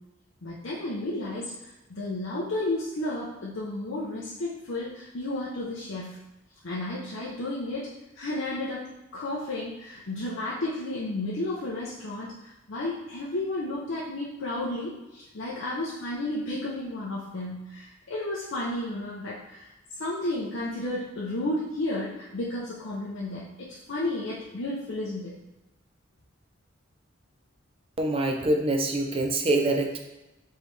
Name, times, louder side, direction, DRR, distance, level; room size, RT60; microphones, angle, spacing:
voice 1, 0.4-1.5 1.9-6.2 6.6-7.9 8.2-8.8 9.1-19.7 20.0-23.5 23.9-25.3, left 1 dB, 80° left, -7 dB, 0.7 m, -32 dB
voice 2, 28.0-30.0, right 2 dB, 30° right, 3 dB, 0.5 m, -25 dB
4.7 x 3.3 x 3.2 m, 0.99 s
head